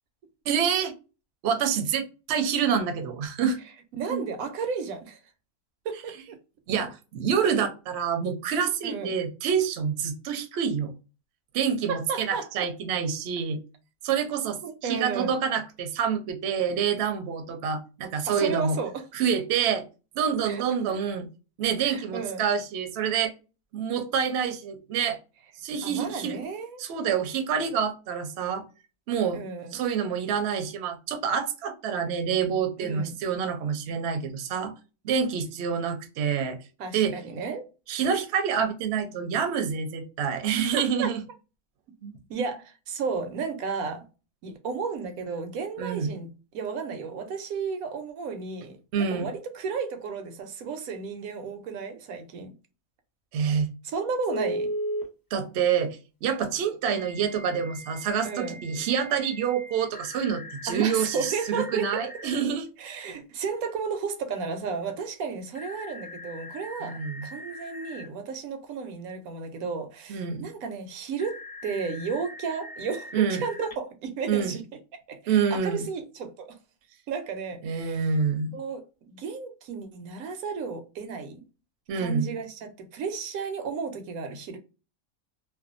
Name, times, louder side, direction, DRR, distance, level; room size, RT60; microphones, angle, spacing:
voice 1, 0.5-0.9 1.4-3.6 4.1-4.2 6.7-10.9 11.5-13.6 14.0-18.8 19.1-19.9 20.2-21.3 21.6-23.3 23.7-25.2 25.6-26.4 26.8-28.6 29.1-29.4 29.7-34.7 35.0-36.6 36.9-37.1 37.9-41.2 42.0-42.1 45.8-46.1 48.9-49.3 53.3-53.7 55.3-62.7 66.8-67.3 70.1-70.4 73.1-73.4 74.3-74.6 75.3-75.8 77.6-78.6 81.9-82.3, right 7 dB, 60° right, 0.8 m, -27 dB
voice 2, 4.0-5.2 5.8-6.4 8.8-9.1 11.9-12.7 14.6-15.4 18.3-19.0 20.4-20.6 21.8-22.5 25.8-26.8 29.3-29.8 32.8-33.1 36.8-37.7 40.6-41.1 42.3-44.0 44.4-52.5 53.8-54.7 58.2-58.6 60.7-62.1 62.8-74.7 75.1-76.6 77.1-78.0 78.5-81.4 81.9-84.6, right 5 dB, 85° right, 1.1 m, -33 dB
Telephone, 54.3-55.0 56.9-62.4 65.5-68.1 71.2-73.7, equal, 30° left, 0.4 m, -39 dB
2.6 x 2.2 x 2.4 m
omnidirectional pair, 1.5 m